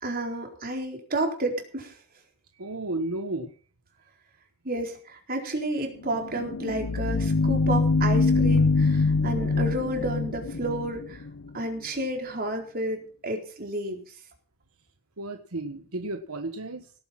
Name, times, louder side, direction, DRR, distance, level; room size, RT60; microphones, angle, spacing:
voice 1, 0.0-1.9 4.6-11.2 11.5-14.0, right 1 dB, 45° right, 2 dB, 4.2 m, -31 dB
voice 2, 2.6-3.5 15.2-16.9, right 2 dB, 80° right, 6 dB, 1.4 m, -33 dB
sound 1, 6.0-11.6, left 3 dB, 85° left, 0.8 m, -24 dB
18.0 x 9.1 x 5.9 m, 0.42 s
head